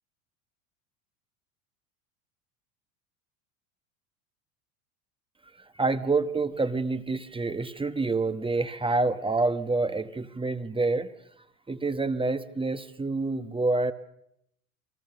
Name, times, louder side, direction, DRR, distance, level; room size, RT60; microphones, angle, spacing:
voice 1, 5.6-11.1 11.7-13.9, right 3 dB, 10° right, 11 dB, 1.2 m, -27 dB
29.0 x 22.0 x 6.8 m, 0.78 s
hypercardioid pair, 85°, 44 cm